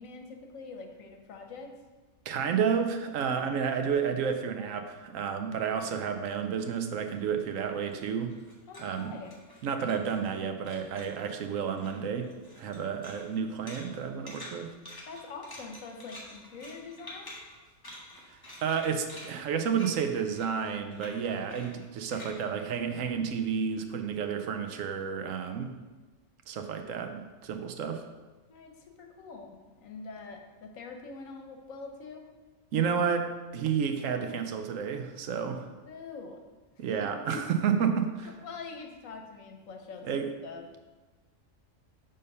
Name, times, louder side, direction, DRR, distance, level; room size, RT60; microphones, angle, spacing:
voice 1, 0.0-1.7 8.7-9.4 15.1-17.4 28.5-29.5 29.8-32.3 35.9-36.4 37.3-37.4 38.2-40.1 40.4-40.6, left 4 dB, 80° left, 3 dB, 1.3 m, -44 dB
voice 2, 2.3-8.4 8.8-9.2 9.6-12.3 12.6-14.7 18.6-25.7 26.5-28.0 32.7-35.7 36.8-38.3 40.0-40.3, right 7 dB, 80° right, 6 dB, 1.0 m, -31 dB
sound 1, 6.4-10.4 10.6-11.4 11.7-23.6, left 1 dB, 15° left, 1.4 m, -49 dB
6.6 x 3.7 x 5.4 m, 1.3 s
omnidirectional pair, 1.4 m